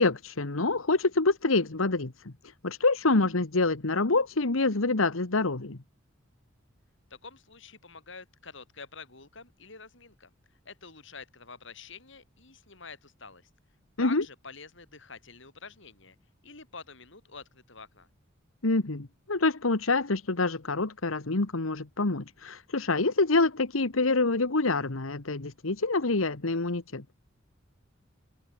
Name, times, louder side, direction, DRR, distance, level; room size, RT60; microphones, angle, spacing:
voice 1, 0.0-5.8 14.0-14.2 18.6-27.0, left 3 dB, 85° left, 1.5 m, -26 dB
voice 2, 7.1-13.5 14.0-16.2 16.4-18.1, left 4 dB, 65° left, 7.9 m, -47 dB
head